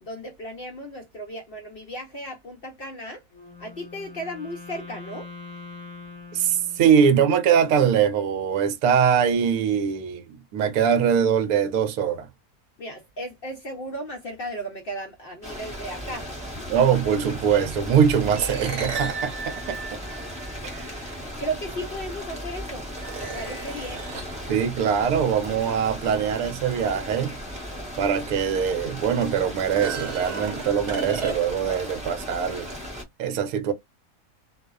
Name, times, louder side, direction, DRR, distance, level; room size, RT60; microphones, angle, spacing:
voice 1, 0.0-3.2 3.6-5.3 12.8-16.3 16.5-16.7 20.9-21.1 21.4-22.9 23.2-24.0, right 1 dB, 65° left, 0.5 m, -35 dB
Wind instrument woodwind instrument, 3.3-7.5, left 4 dB, 20° left, 0.9 m, -43 dB
voice 2, 6.3-12.3 16.7-19.8 20.6-21.0 24.5-27.3 28.0-32.7 33.2-33.7, right 7 dB, 75° right, 1.0 m, -22 dB
sound 1, 15.4-33.0, equal, 5° right, 0.6 m, -36 dB
sound 2, 18.3-20.8 22.0-22.1 22.9-24.5 27.7-27.8 28.3-28.4 29.6-31.7, right 5 dB, 55° right, 1.1 m, -34 dB
2.6 x 2.0 x 2.2 m
omnidirectional pair, 1.6 m